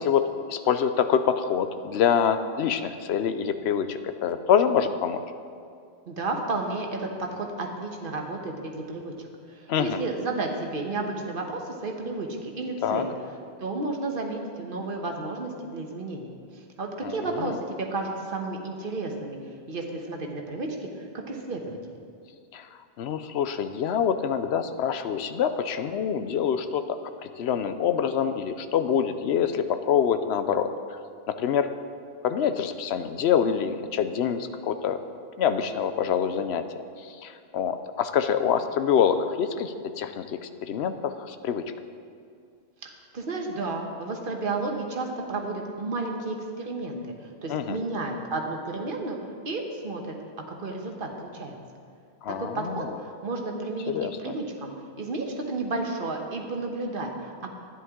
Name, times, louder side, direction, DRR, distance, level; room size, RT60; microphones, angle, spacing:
voice 1, 0.0-5.2 9.7-10.0 12.8-13.1 17.0-17.6 22.5-22.7 23.0-31.0 31.3-31.7 32.2-35.0 35.4-36.6 37.0-41.6 47.5-47.8 52.2-52.9 53.9-54.4, left 8 dB, 90° left, 10 dB, 0.9 m, -26 dB
voice 2, 6.0-12.3 12.5-13.1 13.6-16.3 16.5-19.4 19.7-21.8 42.8-49.2 49.4-50.0 50.6-51.5 52.4-57.5, right 3 dB, 55° right, 1 dB, 1.3 m, -32 dB
12.5 x 10.0 x 3.7 m, 2.3 s
omnidirectional pair, 1.1 m